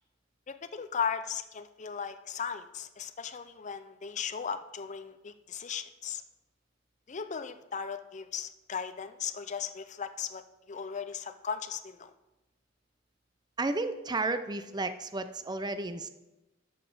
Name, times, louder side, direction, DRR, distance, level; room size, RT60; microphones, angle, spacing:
voice 1, 0.5-6.2 7.1-12.1, left 7 dB, 40° left, 10 dB, 0.5 m, -37 dB
voice 2, 13.6-16.1, right 2 dB, 20° right, 10 dB, 0.5 m, -32 dB
12.0 x 5.9 x 6.3 m, 1.0 s
head